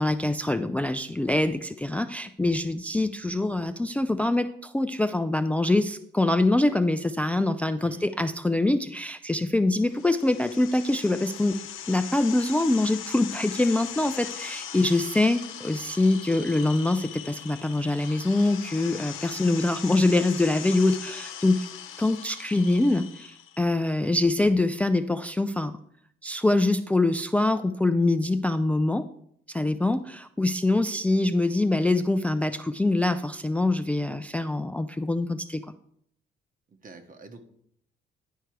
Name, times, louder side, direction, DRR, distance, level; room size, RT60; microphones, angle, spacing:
voice 1, 0.0-11.6 11.9-21.7 22.0-25.7 26.2-29.0 29.5-35.6, left 2 dB, 5° left, 10 dB, 0.3 m, -24 dB
voice 2, 7.8-8.2 36.7-37.4, right 3 dB, 45° right, 7 dB, 1.2 m, -47 dB
sound 1, 9.8-23.6, left 9 dB, 85° left, 0.8 m, -40 dB
10.0 x 4.5 x 4.6 m, 0.68 s
cardioid pair, 90°, 20 cm